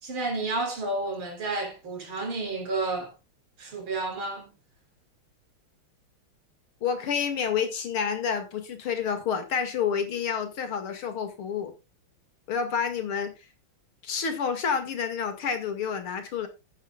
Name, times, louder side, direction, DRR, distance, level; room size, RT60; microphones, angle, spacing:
voice 1, 0.0-3.1 3.6-4.5, right 2 dB, 75° right, 4.2 m, -31 dB
voice 2, 6.8-11.7 12.5-13.3 14.0-16.5, left 7 dB, 85° left, 2.9 m, -29 dB
14.5 x 10.0 x 2.3 m
omnidirectional pair, 2.3 m